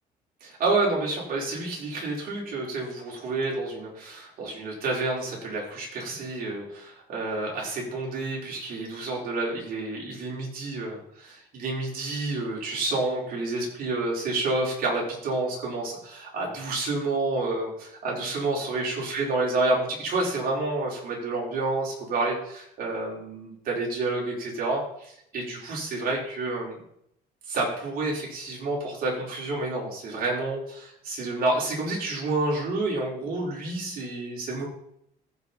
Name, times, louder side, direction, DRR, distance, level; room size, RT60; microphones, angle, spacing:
voice 1, 0.4-26.8 27.5-34.7, right 2 dB, 60° right, -3 dB, 4.6 m, -29 dB
15.0 x 5.5 x 4.3 m, 0.72 s
cardioid pair, 110°, 17 cm